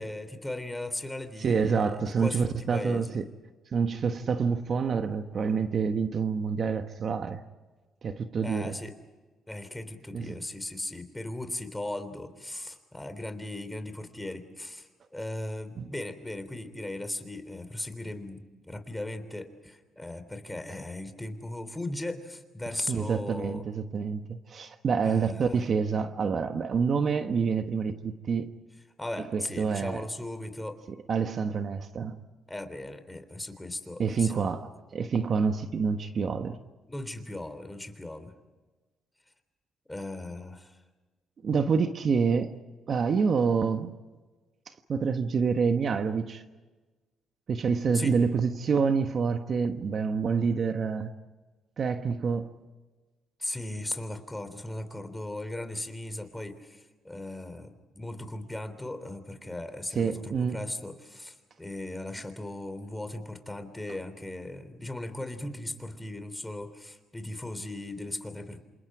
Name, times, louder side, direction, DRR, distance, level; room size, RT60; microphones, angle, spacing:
voice 1, 0.0-3.2 8.4-9.0 9.5-23.6 25.0-25.6 29.0-30.8 32.5-34.6 36.9-38.3 39.9-40.8 47.9-48.2 53.4-68.6, left 1 dB, 10° left, 3.4 m, -38 dB
voice 2, 1.4-3.3 3.7-7.4 8.0-8.7 10.1-10.3 15.8-15.9 22.9-28.5 29.3-30.0 31.1-32.2 34.0-36.6 41.4-42.5 42.9-43.9 44.9-46.4 47.5-51.1 51.8-52.6 59.9-60.6, right 5 dB, 50° right, 1.3 m, -27 dB
27.5 x 27.5 x 4.9 m
cardioid pair, 90°, 0 cm